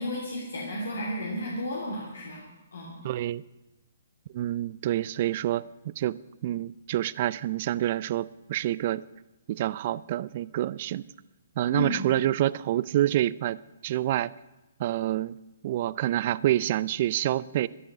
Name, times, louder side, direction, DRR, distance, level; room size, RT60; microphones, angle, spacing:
voice 1, 0.0-2.4 2.7-3.0 11.7-12.1, left 1 dB, 75° left, -2 dB, 2.9 m, -33 dB
voice 2, 3.0-3.4 4.3-9.0 9.5-11.0 11.6-14.3 14.8-15.3 15.6-17.7, right 13 dB, 45° right, 20 dB, 0.4 m, -27 dB
13.5 x 11.0 x 6.1 m, 1.0 s
figure-of-eight pair, 130°, 0 cm